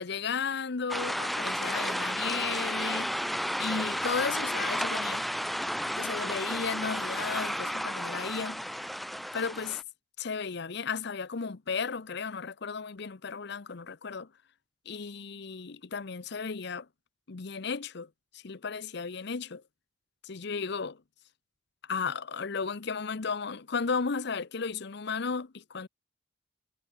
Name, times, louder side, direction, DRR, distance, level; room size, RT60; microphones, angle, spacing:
voice 1, 0.0-3.1 3.6-5.2 6.0-8.6 9.3-9.8 10.2-14.3 14.9-16.9 17.3-18.1 18.3-19.6 20.2-21.0 21.9-25.9, left 5 dB, 65° left, 0.8 m, -34 dB
sound 1, 0.9-9.8, equal, ahead, 2.9 m, -32 dB
head